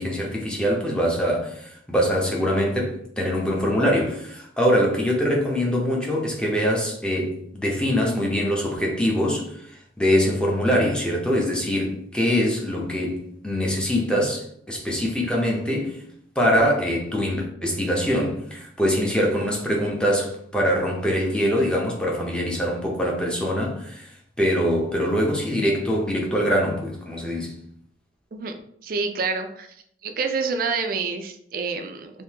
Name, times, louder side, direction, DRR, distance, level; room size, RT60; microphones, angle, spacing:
voice 1, 0.0-16.0 16.4-27.6, equal, 5° left, 0.6 m, -23 dB
voice 2, 28.8-29.7 30.0-32.1, right 4 dB, 50° right, 0.4 m, -27 dB
3.5 x 2.6 x 2.8 m
head